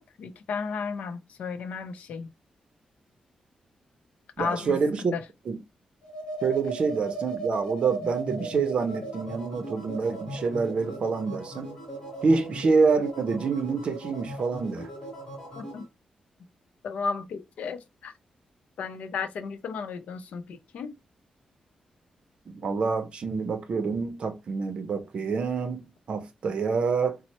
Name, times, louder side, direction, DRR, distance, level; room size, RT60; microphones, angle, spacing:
voice 1, 0.0-2.3 4.4-4.8 5.1-5.3 15.6-15.9 16.8-18.1 18.8-21.0, left 5 dB, 90° left, 0.5 m, -34 dB
voice 2, 4.4-5.1 5.5-5.6 6.4-11.7 12.2-14.9 22.5-27.2, right 4 dB, 50° right, 0.6 m, -27 dB
sound 1, 6.0-15.8, right 2 dB, 30° left, 1.0 m, -37 dB
4.1 x 2.0 x 2.8 m
wide cardioid pair, 170°, 2 cm